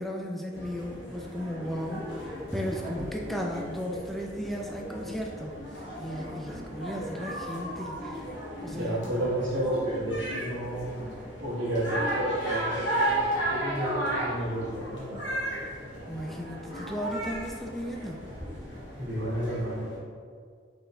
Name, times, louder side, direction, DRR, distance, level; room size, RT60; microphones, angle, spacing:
voice 1, 0.0-8.2 8.6-9.1 16.1-18.2, equal, ahead, 0 dB, 0.3 m, -35 dB
sound 1, 0.5-20.0, right 1 dB, 65° left, 1.1 m, -35 dB
voice 2, 8.7-11.1 11.4-15.3 19.0-19.9, right 1 dB, 80° right, -13 dB, 1.2 m, -31 dB
5.4 x 4.0 x 2.3 m, 2.1 s
head